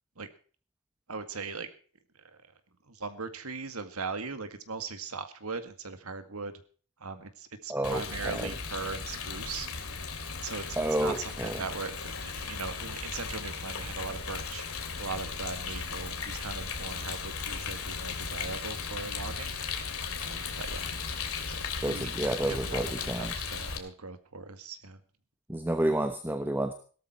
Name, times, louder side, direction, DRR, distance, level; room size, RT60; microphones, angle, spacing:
voice 1, 1.1-1.7 2.9-6.5 7.0-9.7 10.4-14.7 15.0-19.8 20.1-20.9 21.5-22.1 22.4-25.0, right 4 dB, 85° right, 9 dB, 2.0 m, -39 dB
voice 2, 7.7-8.5 10.8-11.6 21.8-23.3 25.5-26.7, right 1 dB, 10° right, 8 dB, 1.0 m, -30 dB
Rain, 7.8-23.8, left 5 dB, 80° left, 2.8 m, -36 dB
17.5 x 13.0 x 4.4 m, 0.42 s
head